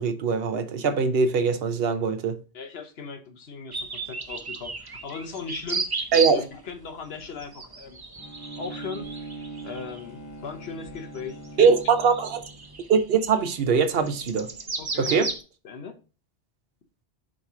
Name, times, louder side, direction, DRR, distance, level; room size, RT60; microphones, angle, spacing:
voice 1, 0.0-2.4 6.1-6.4 11.6-12.4 12.9-14.5 15.0-15.3, right 5 dB, 65° right, 0.8 m, -22 dB
voice 2, 2.5-5.9 6.3-8.0 8.6-9.1 9.6-11.7 14.8-15.3 15.6-16.0, left 5 dB, 70° left, 1.1 m, -38 dB
sound 1, 3.7-6.6 7.0-15.4, right 4 dB, 30° right, 0.5 m, -35 dB
Bowed string instrument, 8.2-12.8, right 3 dB, 30° left, 0.3 m, -41 dB
6.4 x 3.0 x 4.8 m
omnidirectional pair, 1.1 m